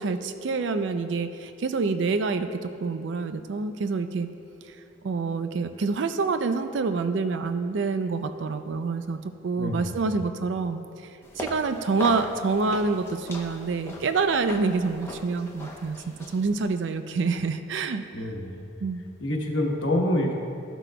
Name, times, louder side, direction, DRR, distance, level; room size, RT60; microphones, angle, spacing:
voice 1, 0.0-4.3 5.0-10.8 11.4-18.3 18.8-19.0, right 4 dB, 75° right, 9 dB, 0.4 m, -27 dB
voice 2, 9.6-9.9 18.1-18.6 19.2-20.3, left 1 dB, 80° left, 0 dB, 1.1 m, -26 dB
sound 1, 11.2-16.8, left 1 dB, 15° left, 0.7 m, -39 dB
13.5 x 6.1 x 2.2 m, 2.6 s
head